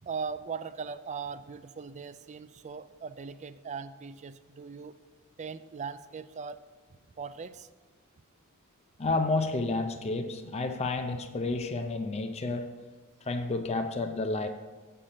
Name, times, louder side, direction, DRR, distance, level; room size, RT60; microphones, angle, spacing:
voice 1, 0.0-5.0 5.4-6.6 7.2-7.7, right 5 dB, 30° right, 13 dB, 0.4 m, -39 dB
voice 2, 9.0-12.7 13.3-14.5, left 3 dB, 30° left, 6 dB, 0.5 m, -30 dB
7.5 x 6.7 x 5.7 m, 1.4 s
head